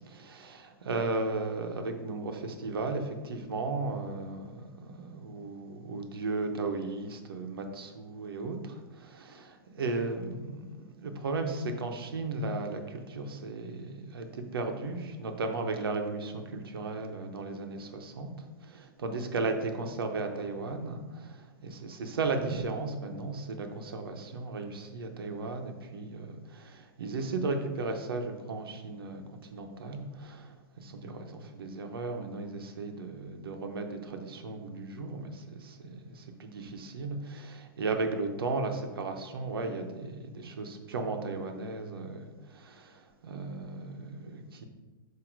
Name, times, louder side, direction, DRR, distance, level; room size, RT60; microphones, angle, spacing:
voice 1, 0.1-18.3 18.6-29.2 29.5-44.7, right 3 dB, 90° right, 5 dB, 1.0 m, -35 dB
7.8 x 2.8 x 4.7 m, 1.3 s
hypercardioid pair, 160°, 12 cm